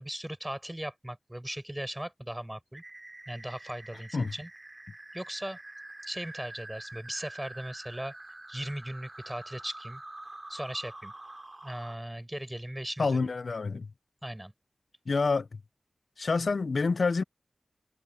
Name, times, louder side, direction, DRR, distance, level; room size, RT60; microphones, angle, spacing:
voice 1, 0.0-2.8 3.3-4.5 5.1-5.6 6.0-8.1 8.5-10.0 10.5-11.1 11.6-13.3 14.2-14.5, right 1 dB, 10° right, 5.3 m, -38 dB
sound 1, 2.8-11.9, right 2 dB, 30° right, 3.6 m, -46 dB
voice 2, 13.0-13.9 15.1-15.5 16.2-17.2, left 4 dB, 70° left, 0.7 m, -27 dB
wide cardioid pair, 70°, 0 cm